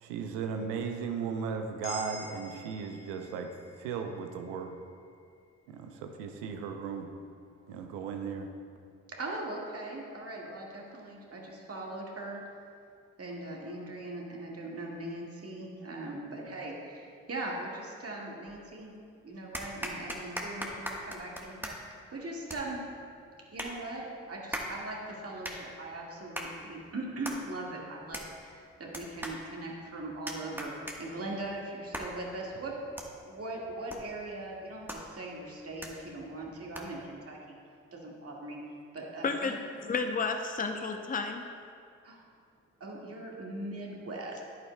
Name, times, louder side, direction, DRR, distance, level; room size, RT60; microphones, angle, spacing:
voice 1, 0.0-3.5 3.8-4.7 5.7-7.1 7.7-8.5, right 6 dB, 85° right, 5 dB, 0.7 m, -36 dB
sound 1, 1.8-6.1, left 2 dB, 85° left, 1.1 m, -48 dB
voice 2, 9.1-12.4 13.2-18.9 19.2-22.8 23.5-32.7 33.1-37.6 37.9-38.6 38.9-39.5 42.0-42.2 42.8-44.4, right 2 dB, 40° right, -2 dB, 1.8 m, -40 dB
sound 2, 18.5-19.0 19.5-37.1, equal, 5° right, 1.2 m, -43 dB
voice 3, 39.2-39.6 39.8-41.4, left 4 dB, 25° left, 5 dB, 0.7 m, -31 dB
10.5 x 9.1 x 2.2 m, 2.4 s
hypercardioid pair, 40°, 35 cm